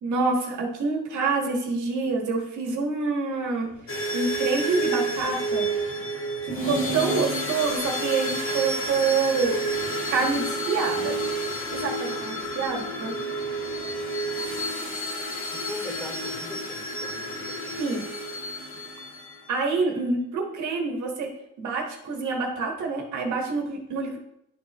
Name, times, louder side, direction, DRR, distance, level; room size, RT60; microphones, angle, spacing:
voice 1, 0.0-3.7 4.1-5.7 6.4-9.6 10.1-11.2 11.7-13.1 17.8-18.0 19.5-21.3 21.6-24.2, right 4 dB, 75° right, 1 dB, 1.4 m, -27 dB
sound 1, 3.4-14.5, left 2 dB, 75° left, 2.1 m, -50 dB
sound 2, 3.9-19.5, right 1 dB, 45° left, 1.7 m, -30 dB
voice 2, 15.4-17.8, left 1 dB, 5° left, -2 dB, 2.5 m, -40 dB
10.5 x 4.3 x 3.0 m, 0.77 s
cardioid pair, 90°, 30 cm